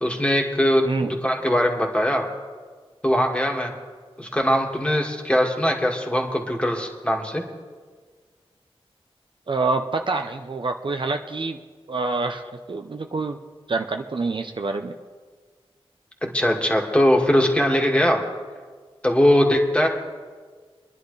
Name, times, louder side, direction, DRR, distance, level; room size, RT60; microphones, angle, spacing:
voice 1, 0.0-2.3 3.0-3.7 4.2-7.4 16.2-18.2 19.0-19.9, equal, 10° left, 0 dB, 2.1 m, -21 dB
voice 2, 0.8-1.2 9.5-11.6 11.9-13.4 13.7-15.0, right 3 dB, 55° right, 5 dB, 0.7 m, -26 dB
25.5 x 11.0 x 3.3 m, 1.5 s
wide cardioid pair, 95°, 10 cm